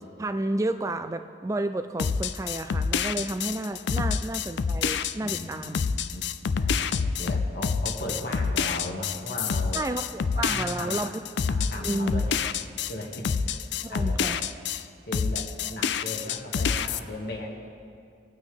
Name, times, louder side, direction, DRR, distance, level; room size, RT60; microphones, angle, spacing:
voice 1, 0.2-5.8 9.7-11.1 11.7-12.2 13.8-14.4, right 2 dB, 15° right, 9 dB, 0.3 m, -31 dB
sound 1, 2.0-14.8 15.1-17.0, left 6 dB, 75° left, 0.4 m, -27 dB
voice 2, 5.2-6.2 6.6-9.8 10.3-11.1 11.5-12.4 12.9-14.4 15.1-17.5, left 1 dB, 55° left, -1 dB, 2.0 m, -37 dB
24.0 x 9.1 x 3.5 m, 2.3 s
head